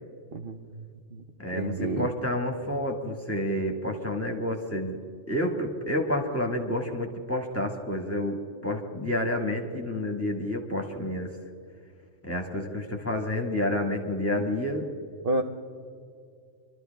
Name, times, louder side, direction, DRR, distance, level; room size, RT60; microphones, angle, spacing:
voice 1, 0.3-0.7 1.1-1.2 1.6-2.1 15.2-15.4, right 2 dB, 50° right, 3 dB, 0.8 m, -29 dB
voice 2, 1.4-5.0 5.3-8.4 8.6-11.3 12.2-14.8, left 1 dB, 10° left, 1 dB, 1.6 m, -29 dB
25.0 x 12.5 x 3.5 m, 2.3 s
omnidirectional pair, 1.5 m